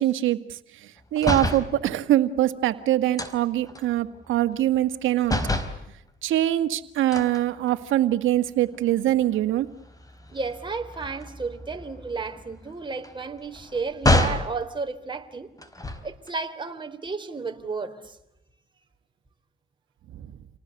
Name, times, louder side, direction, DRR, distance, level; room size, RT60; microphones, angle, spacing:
voice 1, 0.0-5.4 6.2-9.7 20.1-20.3, right 13 dB, 85° right, 1.9 m, -23 dB
sound 1, 1.1-1.7 3.2-5.0 5.2-5.8 7.1-8.1 8.6-8.8 9.1-14.5 15.6-16.3, left 1 dB, 20° left, 4.3 m, -29 dB
voice 2, 10.3-15.5 16.0-18.1, right 4 dB, 25° right, 3.8 m, -32 dB
29.0 x 19.5 x 8.4 m
cardioid pair, 90°, 20 cm